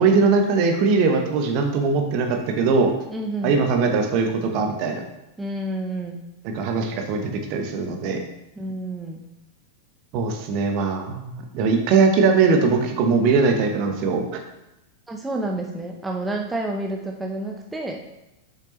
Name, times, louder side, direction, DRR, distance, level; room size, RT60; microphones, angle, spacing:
voice 1, 0.0-2.9 3.4-5.0 6.4-8.2 10.1-14.4, right 4 dB, 45° right, 3 dB, 1.0 m, -21 dB
voice 2, 3.1-3.6 5.4-6.2 8.6-9.3 15.1-18.0, right 2 dB, 10° right, 1 dB, 0.7 m, -29 dB
6.8 x 5.8 x 3.1 m, 0.91 s
figure-of-eight pair, 90°, 0 cm